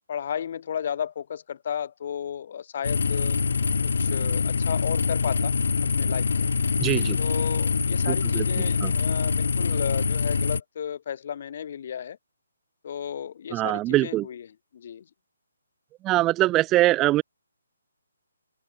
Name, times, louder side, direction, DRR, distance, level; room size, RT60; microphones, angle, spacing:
voice 1, 0.1-3.4 3.8-5.5 5.9-6.5 7.2-12.2 12.8-15.0, left 8 dB, 50° left, 2.0 m, -33 dB
sound 1, 2.8-10.6, left 5 dB, 65° left, 0.4 m, -24 dB
voice 2, 6.8-7.2 8.1-8.4 8.8-8.9 13.5-14.3 16.0-17.2, right 16 dB, 20° right, 0.5 m, -22 dB
open air
figure-of-eight pair, 145°, 0 cm